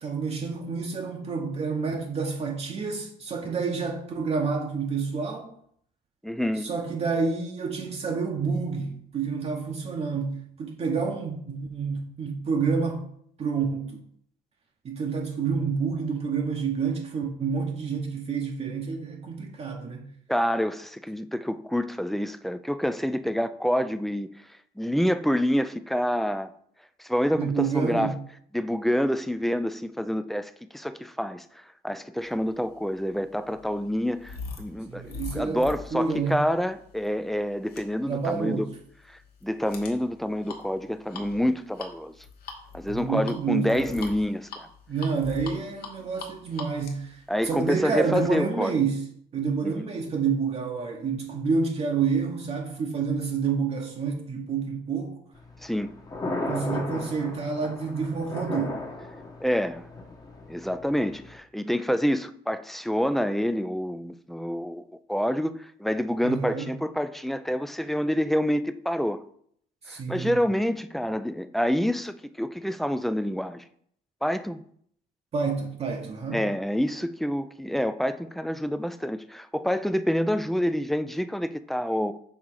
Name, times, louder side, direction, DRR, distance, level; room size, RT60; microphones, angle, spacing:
voice 1, 0.0-5.5 6.6-13.0 13.4-14.0 14.8-20.1 27.3-28.2 34.9-36.4 38.1-38.7 42.9-44.1 44.9-49.1 49.3-55.2 56.4-58.8 66.2-66.7 69.8-70.4 75.3-76.4, right 5 dB, 40° right, 0.8 m, -29 dB
voice 2, 6.2-6.7 20.3-24.3 24.8-26.5 27.0-28.1 28.5-38.7 39.1-42.1 42.7-44.7 47.3-48.7 49.6-49.8 55.6-55.9 59.4-59.9 60.5-69.2 69.9-73.6 74.2-74.6 76.3-82.1, equal, ahead, 0.3 m, -27 dB
sound 1, 32.6-48.3, left 4 dB, 65° left, 1.2 m, -43 dB
Thunder, 55.3-61.4, left 2 dB, 20° left, 1.0 m, -36 dB
5.6 x 3.7 x 4.6 m
cardioid pair, 110°, 17 cm